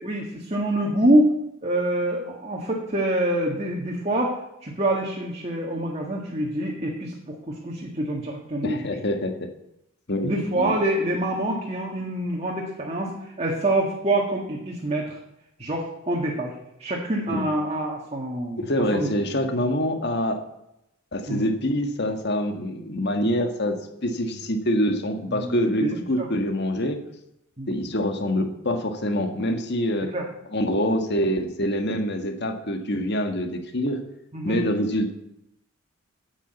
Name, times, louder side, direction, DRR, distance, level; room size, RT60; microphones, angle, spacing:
voice 1, 0.0-1.3 1.6-8.9 10.2-15.2 15.6-16.5 16.8-18.6 18.9-19.1 21.3-21.5 25.3-26.3 27.6-27.7 30.1-30.2 34.3-34.6, right 1 dB, 30° right, -1 dB, 1.7 m, -26 dB
voice 2, 8.6-9.5 10.1-10.7 17.3-17.5 18.6-20.4 21.1-27.0 27.7-30.1 30.5-34.0 34.4-35.1, equal, 50° left, 6 dB, 1.5 m, -25 dB
10.0 x 8.5 x 8.1 m, 0.83 s
head